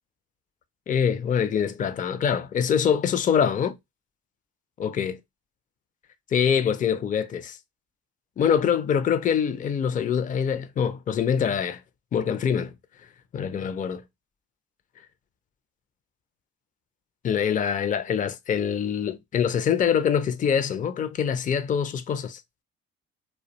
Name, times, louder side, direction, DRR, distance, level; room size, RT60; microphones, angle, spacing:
voice 1, 0.9-3.8 4.8-5.2 6.3-7.6 8.4-11.8 12.1-12.7 13.3-14.0 17.2-22.4, left 7 dB, 25° left, 0.4 m, -24 dB
2.3 x 2.2 x 2.7 m
hypercardioid pair, 60°, 32 cm